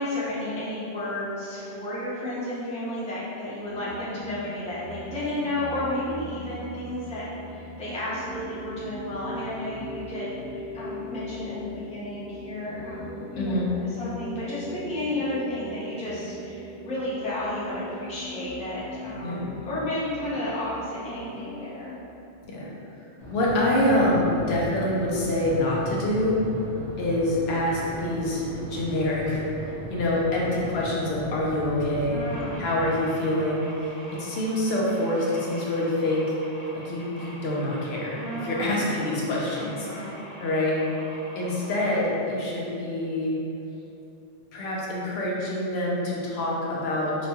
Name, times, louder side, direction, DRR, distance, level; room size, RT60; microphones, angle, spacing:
voice 1, 0.0-22.0 32.1-32.6 38.1-38.8 39.5-40.1, left 1 dB, 10° left, -10 dB, 0.4 m, -32 dB
sound 1, 3.6-22.2, right 1 dB, 70° right, 1.0 m, -40 dB
voice 2, 13.3-13.7 19.2-19.5 22.4-22.7 23.3-26.4 27.0-32.2 32.6-36.2 36.7-38.2 38.4-40.1 40.4-40.8 41.4-43.4 44.5-47.1, left 1 dB, 65° left, -4 dB, 0.8 m, -26 dB
sound 2, 23.2-33.0, left 2 dB, 25° right, 0.7 m, -37 dB
sound 3, 32.2-42.0, equal, 35° left, 0.9 m, -45 dB
2.9 x 2.2 x 2.8 m, 2.7 s
omnidirectional pair, 1.2 m